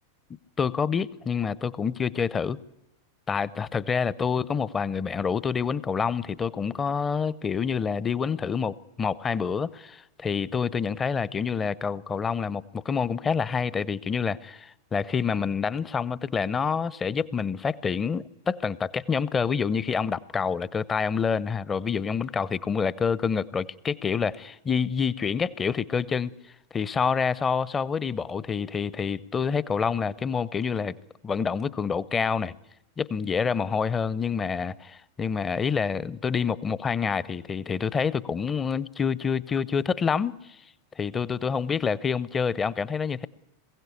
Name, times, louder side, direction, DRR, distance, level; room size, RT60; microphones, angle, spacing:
voice 1, 0.6-2.6 3.3-26.3 26.7-30.9 31.2-32.5 33.0-40.3 41.0-43.3, left 6 dB, 20° left, 0.7 m, -27 dB
21.5 x 16.0 x 8.4 m
figure-of-eight pair, 90°, 0 cm